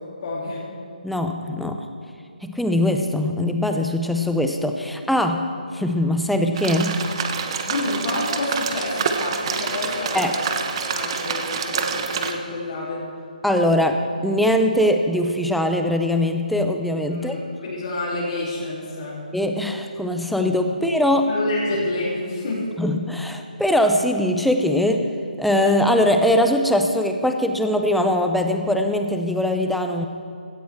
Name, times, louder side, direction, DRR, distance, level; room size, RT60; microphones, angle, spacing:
voice 1, 0.2-0.6 7.6-13.1 17.1-19.2 20.7-20.8 21.2-22.7, left 2 dB, 45° left, -6 dB, 3.3 m, -29 dB
voice 2, 1.0-1.9 2.4-5.4 5.7-7.0 10.1-10.3 13.4-17.4 19.3-21.3 22.8-25.1 25.4-30.1, left 1 dB, ahead, 5 dB, 0.5 m, -21 dB
sound 1, 6.6-12.3, right 6 dB, 35° right, 1.0 m, -27 dB
17.0 x 13.5 x 3.6 m, 2.5 s
hypercardioid pair, 160°, 5 cm